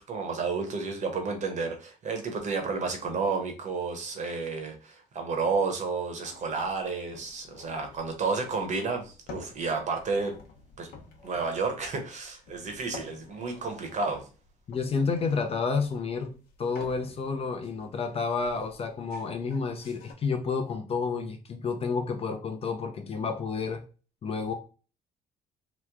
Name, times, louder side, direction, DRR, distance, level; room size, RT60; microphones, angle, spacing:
voice 1, 0.0-10.3 10.8-10.9 11.2-14.3, right 4 dB, 45° right, 0.9 m, -31 dB
sound 1, 6.2-20.1, left 4 dB, 70° left, 0.9 m, -51 dB
voice 2, 14.7-23.8 24.2-24.5, left 5 dB, 35° left, 0.5 m, -30 dB
3.0 x 2.2 x 3.5 m
cardioid pair, 110°, 17 cm